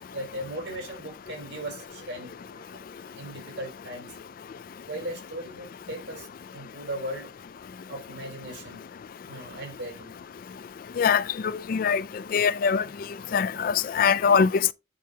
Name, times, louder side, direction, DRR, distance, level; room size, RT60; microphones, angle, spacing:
voice 1, 0.1-4.2 4.4-4.5 4.8-7.3 7.9-8.8 9.2-10.1 13.3-13.6, right 1 dB, 70° right, 4.9 m, -38 dB
voice 2, 11.7-12.0 12.3-12.8 13.3-14.5, left 6 dB, 50° left, 0.3 m, -22 dB
9.2 x 5.5 x 2.8 m
head